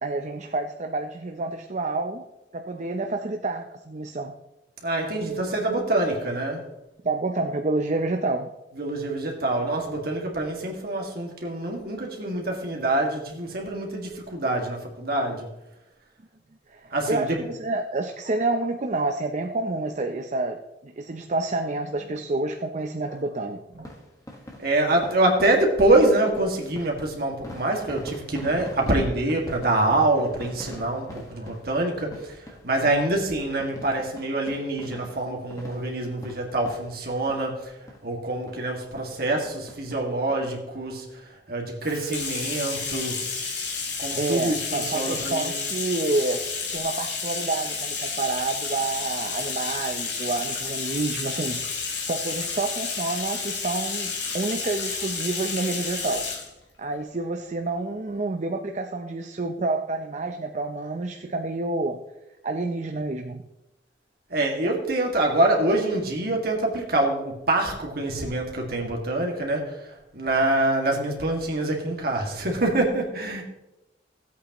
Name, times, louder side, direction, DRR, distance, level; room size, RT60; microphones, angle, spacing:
voice 1, 0.0-2.3 2.5-4.3 7.0-8.5 16.7-23.9 44.2-46.4 46.7-56.3 56.8-62.0 62.4-63.4, right 2 dB, 40° right, 4 dB, 0.6 m, -28 dB
voice 2, 4.8-6.6 8.8-15.5 16.9-17.3 23.1-23.2 24.6-32.3 32.6-37.7 38.0-41.1 41.5-43.2 44.0-45.5 64.3-69.7 70.1-73.4, right 2 dB, 60° right, 0 dB, 2.0 m, -25 dB
sound 1, 23.7-37.6 37.9-38.0 38.5-38.6 39.0-39.1 39.4-40.4 40.8-40.9 41.1-41.2, left 1 dB, 20° left, 1.5 m, -44 dB
Bathtub (filling or washing), 41.8-56.5, left 5 dB, 80° left, 2.0 m, -31 dB
16.5 x 8.3 x 3.0 m, 0.95 s
head